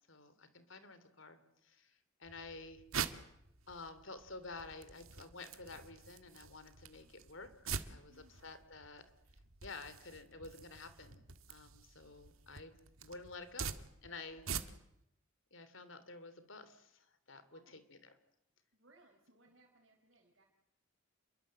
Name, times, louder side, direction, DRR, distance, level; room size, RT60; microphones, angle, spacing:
voice 1, 0.1-2.8 3.7-9.1 9.6-11.2 11.5-13.7 14.0-14.4 15.5-18.2, left 3 dB, 65° left, 12 dB, 3.3 m, -51 dB
sound 1, 2.3-15.0, right 6 dB, 85° right, 1.8 m, -46 dB
voice 2, 7.9-8.5 14.2-14.8 17.5-17.8 18.7-20.4, right 2 dB, 60° right, -2 dB, 4.5 m, -68 dB
28.5 x 22.5 x 7.7 m, 0.81 s
head